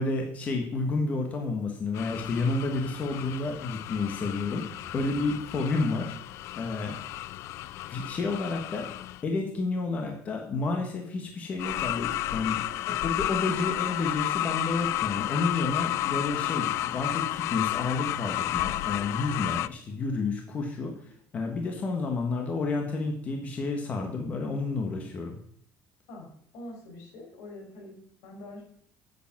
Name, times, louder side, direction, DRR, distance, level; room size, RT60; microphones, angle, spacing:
voice 1, 0.0-7.1 7.9-8.9 9.2-12.6 13.0-21.0 21.3-25.4, left 3 dB, 25° left, 3 dB, 1.3 m, -30 dB
sound 1, 1.9-9.2 11.6-19.7, left 15 dB, 55° left, 0.3 m, -32 dB
voice 2, 26.1-28.6, left 1 dB, 80° left, 0 dB, 4.7 m, -45 dB
9.0 x 8.2 x 6.0 m, 0.65 s
cardioid pair, 180°, 6 cm